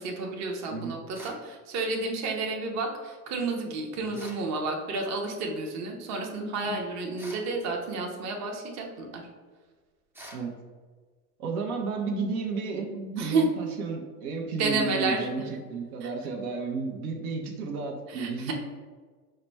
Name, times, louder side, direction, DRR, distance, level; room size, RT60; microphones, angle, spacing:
voice 1, 0.0-9.2 13.2-13.4 14.6-15.3 16.0-16.1 18.1-18.5, right 3 dB, 35° right, 1 dB, 0.8 m, -31 dB
sound 1, 1.1-1.5 4.1-4.5 7.2-7.5 10.1-10.5, right 1 dB, 5° right, 0.5 m, -45 dB
voice 2, 11.4-15.4 15.7-18.5, right 4 dB, 65° right, 1 dB, 0.9 m, -33 dB
4.9 x 2.2 x 4.5 m, 1.4 s
hypercardioid pair, 105°, 48 cm